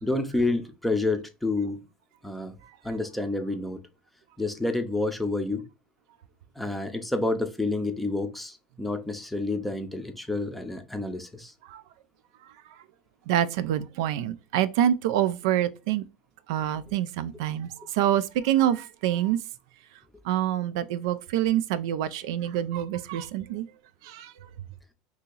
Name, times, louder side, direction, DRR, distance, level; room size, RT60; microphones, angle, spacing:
voice 1, 0.0-1.8 2.2-2.5 2.8-3.8 4.4-5.7 6.6-11.5, left 2 dB, 5° left, 0.5 m, -29 dB
voice 2, 13.3-16.0 16.5-19.4 20.2-23.7 24.0-24.3, right 11 dB, 80° right, 0.3 m, -26 dB
2.8 x 2.7 x 3.7 m
supercardioid pair, 145°, 3 cm